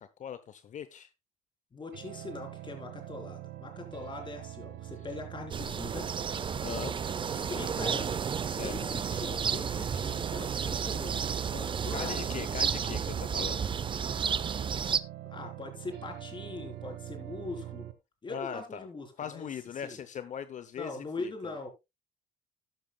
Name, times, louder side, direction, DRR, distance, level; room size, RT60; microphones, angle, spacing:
voice 1, 0.2-1.1 6.6-7.0 8.5-8.8 11.5-13.6 18.3-18.9 19.2-21.5, left 8 dB, 45° left, 0.8 m, -40 dB
voice 2, 1.7-6.1 7.3-8.2 8.5-11.2 11.8-12.5 12.8-13.0 15.3-17.9 18.2-19.5 19.8-20.0 20.8-21.7, left 3 dB, 30° left, 3.7 m, -41 dB
sound 1, 1.9-17.9, right 13 dB, 80° right, 1.6 m, -44 dB
sound 2, 5.5-15.0, right 7 dB, 30° right, 0.6 m, -32 dB
12.0 x 12.0 x 2.3 m
cardioid pair, 110°, 17 cm